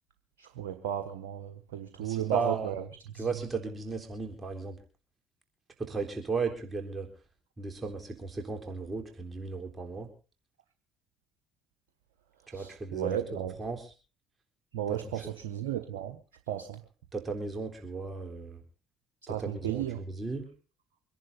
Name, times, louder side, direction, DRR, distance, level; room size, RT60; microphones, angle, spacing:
voice 1, 0.4-2.8 3.2-3.3 12.5-13.5 14.7-16.2 16.5-16.8 19.3-20.0, right 11 dB, 80° right, 6 dB, 1.2 m, -34 dB
voice 2, 2.0-2.7 3.1-4.8 5.8-7.1 7.6-10.1 12.5-13.9 14.9-15.3 17.1-18.6 19.3-20.5, right 4 dB, 25° right, 4 dB, 3.8 m, -35 dB
25.0 x 11.0 x 4.1 m, 0.35 s
hypercardioid pair, 55°, 0 cm